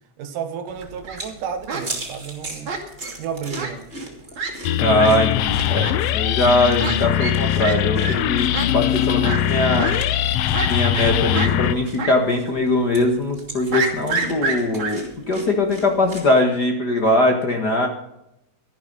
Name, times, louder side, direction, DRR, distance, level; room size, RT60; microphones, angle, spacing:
voice 1, 0.2-2.8 3.2-3.9, right 7 dB, 85° right, 2.9 m, -31 dB
sound 1, 0.7-16.3, right 2 dB, 20° right, 2.9 m, -39 dB
Fowl, 0.8-1.2 1.7-1.8 2.7-3.1 3.5-3.7 4.0-4.1 4.4-4.5 4.9-5.1 5.8-5.9 6.8-6.9 7.2-7.3 7.6-7.8 8.0-8.1 8.5-8.7 9.2-9.4 9.8-9.9 10.5-11.1 11.3-11.5 12.0-12.1 12.5-12.6 13.7-14.9, right 4 dB, 40° right, 2.7 m, -26 dB
sound 2, 4.6-11.8, left 11 dB, 85° left, 1.4 m, -21 dB
voice 2, 4.8-10.0 10.6-17.9, left 2 dB, 45° left, 1.4 m, -21 dB
13.0 x 11.5 x 5.4 m
omnidirectional pair, 3.6 m